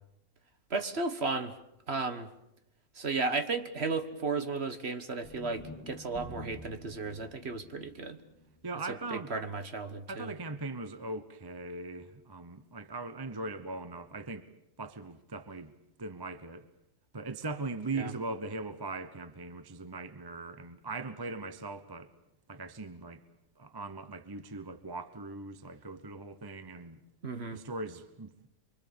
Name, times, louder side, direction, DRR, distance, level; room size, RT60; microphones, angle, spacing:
voice 1, 0.7-1.5 1.9-2.3 2.9-8.2 9.1-10.3 17.9-18.1 27.2-27.6, right 3 dB, 40° right, 1.5 m, -34 dB
sound 1, 5.2-9.5, left 2 dB, 10° left, 1.6 m, -49 dB
voice 2, 8.6-9.3 10.1-14.5 14.8-15.7 16.0-16.7 17.1-22.1 22.5-23.2 23.6-27.0 27.5-28.5, right 3 dB, 20° right, 0.8 m, -40 dB
25.5 x 24.5 x 7.0 m
omnidirectional pair, 1.8 m